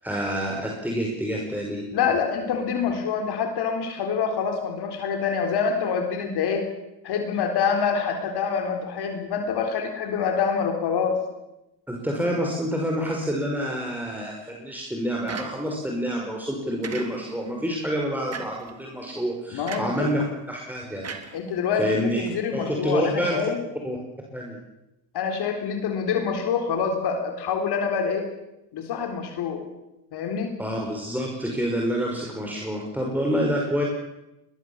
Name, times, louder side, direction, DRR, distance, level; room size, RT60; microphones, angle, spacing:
voice 1, 0.0-1.8 11.9-20.2 20.5-21.0 21.8-22.2 22.5-23.4 23.8-24.0 24.3-24.6 30.6-33.8, equal, 5° right, -1 dB, 5.5 m, -27 dB
voice 2, 1.9-6.7 7.0-11.2 19.5-20.1 21.3-21.9 22.2-23.6 25.1-28.3 28.7-29.6 30.1-30.6, left 6 dB, 50° left, 5 dB, 4.0 m, -26 dB
sound 1, 15.3-15.9 16.8-17.5 18.3-18.7 19.7-20.1 21.0-21.9, right 5 dB, 30° right, 2.8 m, -37 dB
21.5 x 21.0 x 7.3 m, 0.93 s
hypercardioid pair, 80°, 49 cm